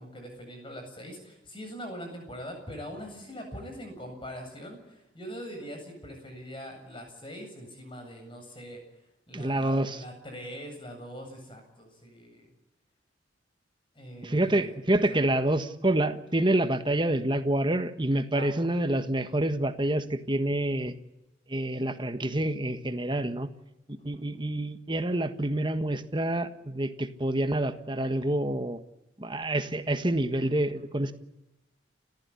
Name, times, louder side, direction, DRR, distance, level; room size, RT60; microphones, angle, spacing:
voice 1, 0.0-8.8 9.3-12.5 13.9-14.8 15.1-15.2 18.3-18.5 24.0-24.3 30.7-31.0, equal, 25° left, 4 dB, 7.8 m, -42 dB
voice 2, 9.3-10.0 14.2-20.9 21.5-23.5 23.9-28.8 29.2-31.1, right 1 dB, 25° right, 9 dB, 1.5 m, -27 dB
30.0 x 15.0 x 9.8 m, 0.97 s
head